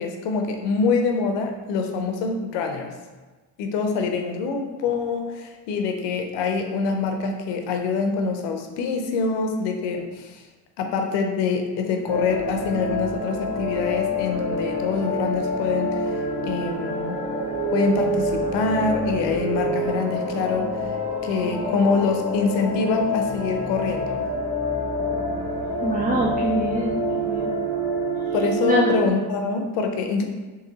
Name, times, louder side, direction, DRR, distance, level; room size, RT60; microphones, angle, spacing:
voice 1, 0.0-2.9 3.6-10.4 10.8-16.0 16.4-17.2 17.7-20.7 21.2-24.2 28.3-30.2, left 4 dB, 90° left, 4 dB, 0.7 m, -25 dB
sound 1, 12.1-29.1, equal, 75° right, 0.9 m, -27 dB
voice 2, 25.8-27.5 28.6-28.9, right 2 dB, 20° right, -3 dB, 0.5 m, -25 dB
3.8 x 2.8 x 4.0 m, 1.3 s
supercardioid pair, 75°, 42 cm